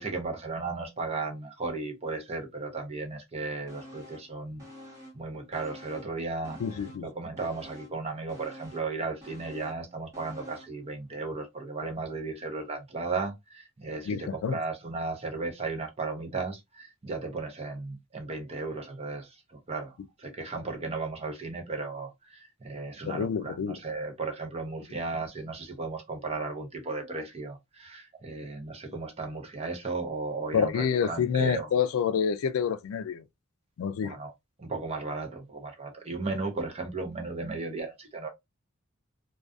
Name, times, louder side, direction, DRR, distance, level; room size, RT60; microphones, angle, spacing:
voice 1, 0.0-6.6 7.0-31.7 34.0-34.3 34.6-38.3, right 3 dB, 30° right, 0.6 m, -35 dB
sound 1, 3.7-4.3 4.6-6.2 6.4-10.8 11.2-11.3, left 1 dB, 15° right, 1.0 m, -49 dB
voice 2, 6.6-7.0 14.1-14.6 23.1-23.8 30.5-33.2 33.8-34.1, left 7 dB, 85° left, 0.3 m, -28 dB
2.3 x 2.3 x 2.4 m
head